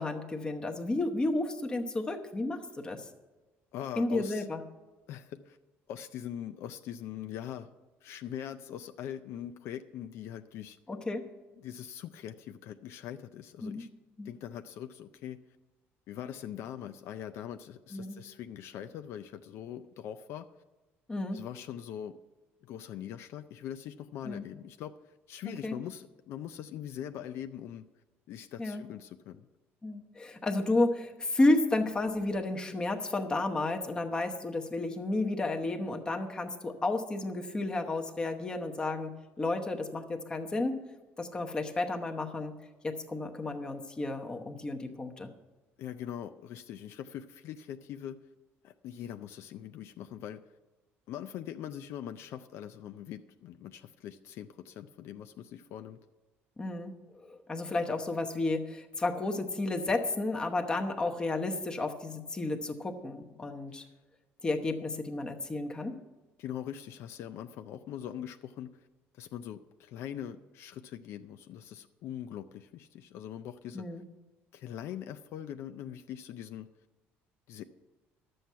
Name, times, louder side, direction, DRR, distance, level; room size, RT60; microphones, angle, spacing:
voice 1, 0.0-3.0 4.0-4.6 10.9-11.3 13.6-13.8 14.2-14.3 17.9-18.2 21.1-21.4 24.2-24.4 25.4-25.8 28.6-28.8 29.8-40.8 41.2-42.5 42.8-45.3 56.6-56.9 57.2-63.8 64.4-66.0 73.7-74.0, left 2 dB, 15° left, 4 dB, 1.0 m, -32 dB
voice 2, 3.7-4.5 5.1-5.6 5.9-7.7 8.0-10.8 11.6-13.9 14.2-15.4 16.1-20.5 21.3-22.2 22.7-27.8 28.3-29.5 45.8-48.2 48.6-50.4 51.1-56.0 63.8-63.9 66.4-68.9 69.1-73.8 74.5-76.7 77.5-77.7, left 10 dB, 65° left, 8 dB, 0.5 m, -42 dB
12.0 x 7.8 x 5.6 m, 1.2 s
cardioid pair, 150°, 5 cm